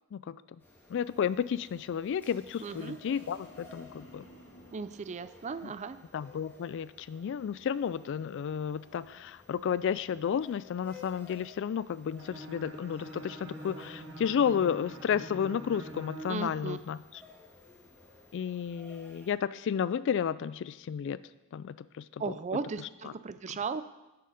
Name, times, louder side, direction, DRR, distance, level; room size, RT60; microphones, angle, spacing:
sound 1, 0.6-19.3, left 3 dB, 10° left, 1.9 m, -56 dB
voice 1, 0.9-4.2 5.6-5.7 6.1-17.2 18.3-21.2 21.5-22.3 23.0-23.1 23.5-23.6, left 8 dB, 60° left, 17 dB, 0.3 m, -32 dB
sound 2, 2.6-6.0 6.4-6.8, equal, 85° left, 2.1 m, -56 dB
voice 2, 2.6-3.0 4.7-6.0 16.3-16.8 22.2-23.8, right 4 dB, 35° right, 13 dB, 0.4 m, -36 dB
Bowed string instrument, 12.2-16.4, right 1 dB, 65° right, 1.6 m, -45 dB
10.0 x 6.8 x 4.9 m, 1.0 s
head